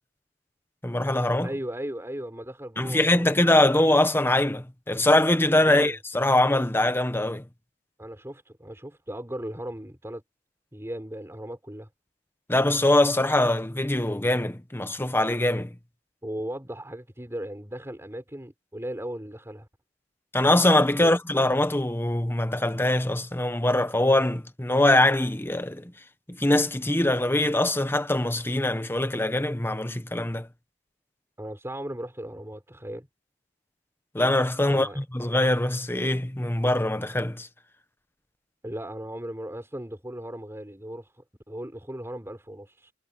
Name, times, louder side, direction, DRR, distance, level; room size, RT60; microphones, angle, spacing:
voice 1, 0.8-1.5 2.8-7.5 12.5-15.7 20.3-25.9 26.3-30.5 34.1-37.5, left 1 dB, 10° left, 1.2 m, -23 dB
voice 2, 1.4-3.5 5.7-6.0 8.0-10.2 10.7-11.9 16.2-19.7 21.0-21.2 31.4-33.1 34.7-35.0 38.6-42.9, right 1 dB, 15° right, 5.5 m, -37 dB
head